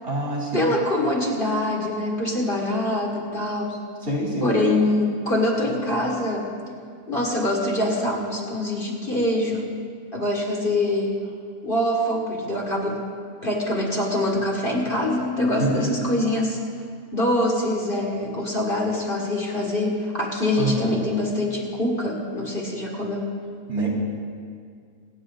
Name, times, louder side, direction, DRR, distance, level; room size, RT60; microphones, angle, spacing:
voice 1, 0.0-0.7 4.0-4.5 15.6-15.9 20.6-20.9 23.7-23.9, right 2 dB, 50° right, -4 dB, 3.4 m, -26 dB
voice 2, 0.5-3.8 4.4-6.5 7.1-9.7 10.1-11.1 11.6-13.1 13.4-16.6 17.1-23.3, left 1 dB, 40° left, -1 dB, 1.8 m, -24 dB
26.0 x 9.2 x 3.8 m, 2.2 s
omnidirectional pair, 1.5 m